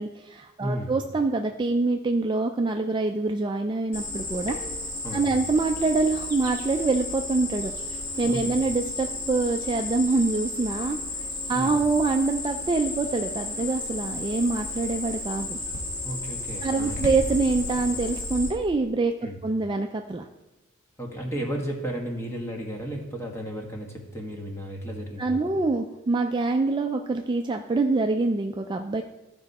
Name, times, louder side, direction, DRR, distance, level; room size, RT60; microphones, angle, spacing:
voice 1, 0.0-4.6 5.1-7.7 8.2-15.6 16.6-19.1 19.4-20.2 25.2-29.0, right 3 dB, 20° right, 4 dB, 0.4 m, -25 dB
voice 2, 0.6-0.9 5.0-5.4 8.3-8.6 11.5-11.7 16.0-17.0 19.2-19.4 21.0-25.4, equal, 15° left, 0 dB, 1.5 m, -33 dB
Cricket, 3.9-18.5, left 2 dB, 85° left, 1.9 m, -33 dB
14.5 x 5.2 x 4.1 m, 1.0 s
head